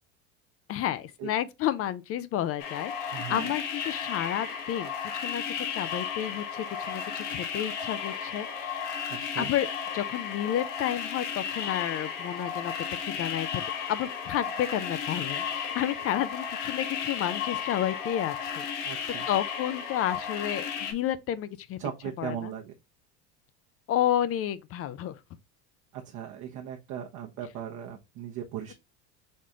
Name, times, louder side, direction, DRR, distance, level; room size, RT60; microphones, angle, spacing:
voice 1, 0.7-9.0 9.4-9.7 9.9-12.7 13.0-13.6 13.9-19.0 19.3-21.8 22.2-22.5 23.9-25.1, left 11 dB, 40° left, 0.4 m, -31 dB
sound 1, 2.6-20.9, left 7 dB, 60° left, 1.4 m, -34 dB
voice 2, 3.1-3.5 9.1-9.5 18.8-19.3 21.8-22.7 25.9-28.7, right 9 dB, 55° right, 0.9 m, -38 dB
4.2 x 3.1 x 3.7 m
supercardioid pair, 100°, 36 cm